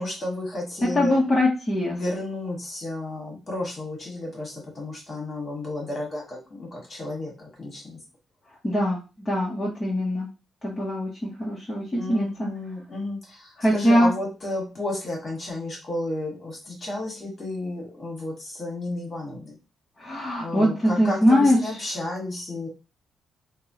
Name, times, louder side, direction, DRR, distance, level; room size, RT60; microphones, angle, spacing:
voice 1, 0.0-1.2 1.9-8.0 11.9-19.5 20.4-22.7, left 2 dB, 35° left, -1 dB, 1.3 m, -32 dB
voice 2, 0.8-1.9 8.6-9.0 9.3-10.3 10.6-12.5 13.6-14.1 20.0-21.6, equal, 20° left, -6 dB, 0.8 m, -22 dB
3.4 x 2.0 x 2.7 m, 0.31 s
cardioid pair, 120°, 0 cm